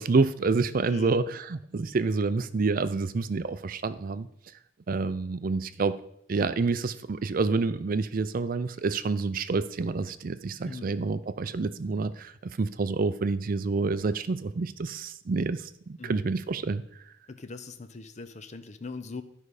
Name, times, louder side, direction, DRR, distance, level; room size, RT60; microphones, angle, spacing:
voice 1, 0.0-4.3 4.9-6.0 6.3-16.8, right 4 dB, 45° right, 13 dB, 0.4 m, -28 dB
voice 2, 0.9-1.2 10.6-10.9 16.0-16.2 17.3-19.2, left 3 dB, 35° left, 11 dB, 0.6 m, -41 dB
12.5 x 5.4 x 4.8 m, 0.72 s
head